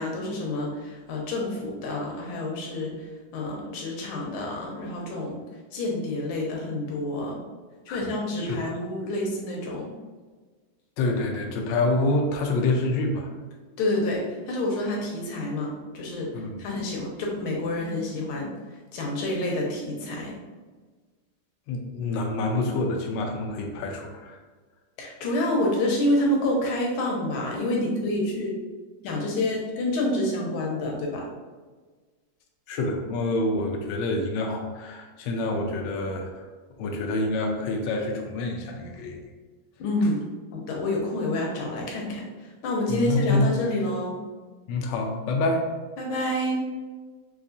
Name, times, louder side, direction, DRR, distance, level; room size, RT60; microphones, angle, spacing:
voice 1, 0.0-2.9 3.3-5.4 5.7-7.4 7.9-9.9 13.8-16.3 16.6-18.5 18.9-20.3 25.0-28.5 29.0-31.2 39.8-40.2 40.5-42.2 42.6-44.2 46.0-46.6, left 1 dB, 90° left, -1 dB, 1.6 m, -28 dB
voice 2, 7.9-8.6 11.0-13.3 16.3-16.6 21.7-24.4 32.7-36.5 36.8-39.2 42.9-43.5 44.7-45.7, left 2 dB, 75° left, 1 dB, 1.2 m, -27 dB
4.7 x 2.4 x 2.7 m, 1.4 s
omnidirectional pair, 2.2 m